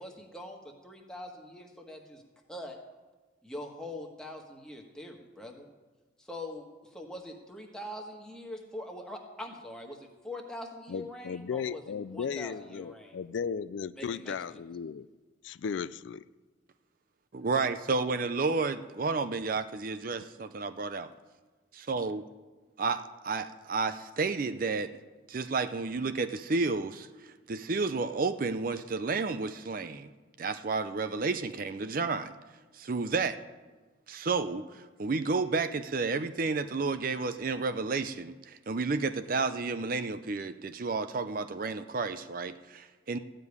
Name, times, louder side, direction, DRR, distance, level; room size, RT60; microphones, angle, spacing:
voice 1, 0.0-2.2 2.5-2.8 3.4-5.7 6.2-6.6 6.9-11.8 12.1-13.2 14.0-14.6, left 1 dB, 5° left, 1 dB, 1.4 m, -43 dB
voice 2, 10.9-15.1 15.4-16.2, left 6 dB, 70° left, 16 dB, 0.3 m, -36 dB
voice 3, 17.3-21.1 21.9-22.2 22.8-24.9 25.3-30.1 30.4-32.3 32.7-33.4 34.1-43.2, right 4 dB, 45° right, 11 dB, 0.5 m, -31 dB
14.5 x 5.2 x 9.6 m, 1.3 s
head